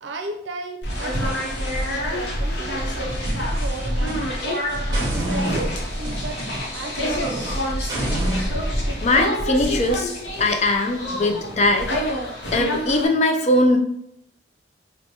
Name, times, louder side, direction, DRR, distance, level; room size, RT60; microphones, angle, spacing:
voice 1, 0.0-3.1 3.4-4.5 5.2-6.4 6.7-7.2 8.6-9.0, right 2 dB, 85° right, 5 dB, 0.5 m, -35 dB
sound 1, 0.8-13.1, equal, 70° left, 0.8 m, -26 dB
sound 2, 3.1-4.5 4.9-8.5, right 1 dB, 25° right, 1.1 m, -30 dB
voice 2, 9.0-10.1 10.4-11.9 12.5-13.8, left 2 dB, 35° left, 4 dB, 0.4 m, -20 dB
4.6 x 2.1 x 2.8 m, 0.75 s
head